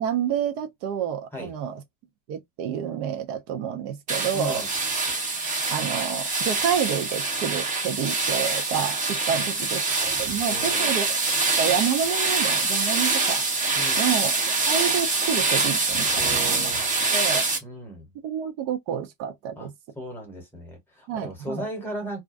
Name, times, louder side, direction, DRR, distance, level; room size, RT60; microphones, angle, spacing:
voice 1, 0.0-1.8 2.3-4.6 5.7-11.2 11.6-13.4 14.0-14.3 14.7-16.7 17.1-17.4 18.2-19.7 21.1-21.7, right 8 dB, 55° right, 0.6 m, -29 dB
sound 1, 4.1-17.6, right 3 dB, 20° right, 0.7 m, -25 dB
voice 2, 4.3-4.7 9.3-9.6 10.5-11.0 13.7-14.1 16.2-16.9 17.6-18.1 19.6-19.7 19.9-22.2, equal, 5° left, 0.9 m, -36 dB
2.4 x 2.2 x 2.4 m
cardioid pair, 160°, 38 cm